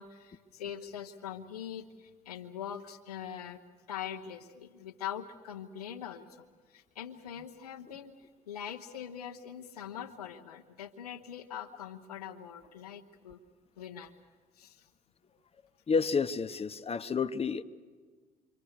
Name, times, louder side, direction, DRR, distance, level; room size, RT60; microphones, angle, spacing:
voice 1, 0.0-3.6 3.9-8.2 8.5-13.4 13.8-14.2 14.5-14.9, left 9 dB, 90° left, 5 dB, 1.0 m, -43 dB
voice 2, 15.9-17.6, left 5 dB, 30° left, 10 dB, 1.0 m, -30 dB
27.0 x 24.5 x 6.6 m, 1.5 s
hypercardioid pair, 50°, 19 cm